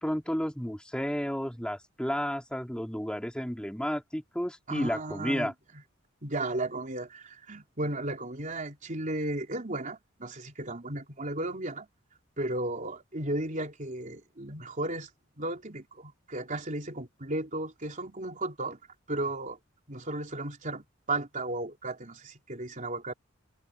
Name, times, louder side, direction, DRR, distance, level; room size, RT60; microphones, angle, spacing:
voice 1, 0.0-5.5, equal, 5° left, 2.9 m, -32 dB
voice 2, 4.7-5.8 6.2-11.9 12.4-15.1 15.4-18.8 19.1-19.6 19.9-23.1, right 2 dB, 40° right, 3.7 m, -34 dB
head